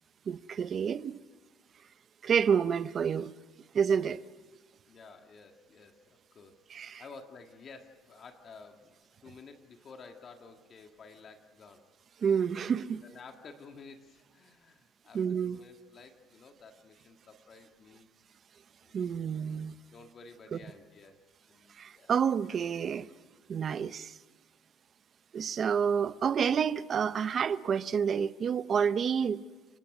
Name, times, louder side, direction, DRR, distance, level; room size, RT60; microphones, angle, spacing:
voice 1, 0.3-1.2 2.2-3.3 3.7-4.2 6.7-7.0 12.2-13.0 15.1-15.6 18.9-19.8 20.5-20.6 21.8-23.1 23.5-24.1 25.3-29.4, right 7 dB, 30° right, 0.7 m, -29 dB
voice 2, 4.9-11.9 13.0-18.1 18.8-19.3 19.9-22.1, left 4 dB, 30° left, 1.8 m, -53 dB
30.0 x 23.5 x 6.1 m
cardioid pair, 160°, 0 cm